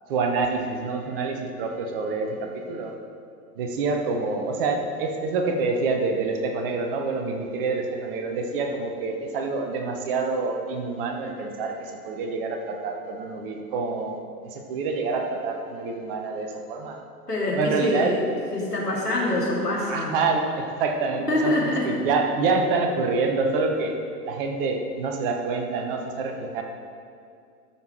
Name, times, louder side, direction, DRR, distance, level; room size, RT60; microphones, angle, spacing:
voice 1, 0.1-2.9 3.6-14.2 14.5-17.0 17.5-18.2 19.9-24.0 24.2-26.6, right 4 dB, 35° right, 3 dB, 1.1 m, -27 dB
voice 2, 17.3-18.2 18.5-20.1 21.3-21.9, left 1 dB, 85° left, -4 dB, 2.5 m, -25 dB
13.0 x 5.9 x 4.5 m, 2.3 s
figure-of-eight pair, 105°, 47 cm